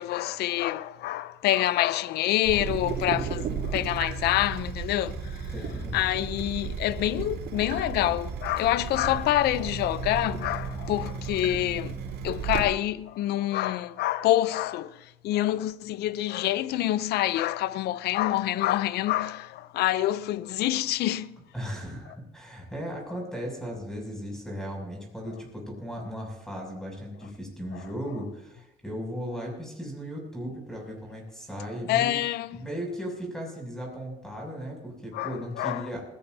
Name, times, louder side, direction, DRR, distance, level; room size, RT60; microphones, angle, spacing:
voice 1, 0.0-5.5 5.9-21.4 27.7-27.8 31.9-32.6 35.1-36.0, left 14 dB, 75° left, 0.6 m, -27 dB
Water tap faucet / Drip, 2.4-12.6, right 5 dB, 75° right, 4.9 m, -34 dB
voice 2, 5.5-6.0 21.5-32.2 32.5-36.0, equal, 5° left, 6.9 m, -36 dB
20.5 x 16.5 x 2.7 m
cardioid pair, 110°, 17 cm